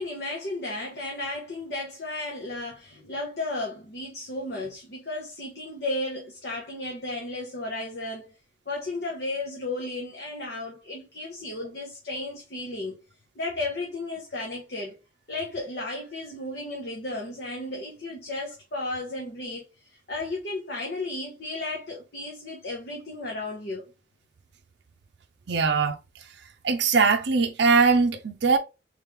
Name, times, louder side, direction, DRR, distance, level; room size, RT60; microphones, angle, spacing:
voice 1, 0.0-8.4 8.7-13.0 13.3-14.9 15.3-23.9, left 2 dB, 55° left, 1.0 m, -34 dB
voice 2, 25.5-26.0 26.6-28.6, right 4 dB, 60° right, 0.5 m, -21 dB
3.3 x 3.1 x 3.5 m
head